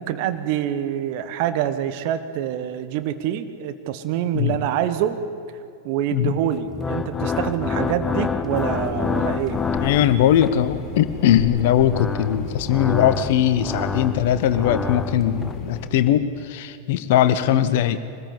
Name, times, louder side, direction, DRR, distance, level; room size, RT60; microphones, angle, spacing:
voice 1, 0.0-5.2 5.8-9.6, right 11 dB, 45° right, 10 dB, 1.4 m, -26 dB
sound 1, 6.6-10.7 11.6-15.6, left 5 dB, 15° left, 1.1 m, -28 dB
sound 2, 8.7-15.8, left 3 dB, 30° left, 5.5 m, -35 dB
voice 2, 9.8-18.0, left 11 dB, 50° left, 13 dB, 1.1 m, -20 dB
24.0 x 19.5 x 8.4 m, 2.5 s
figure-of-eight pair, 90°, 0 cm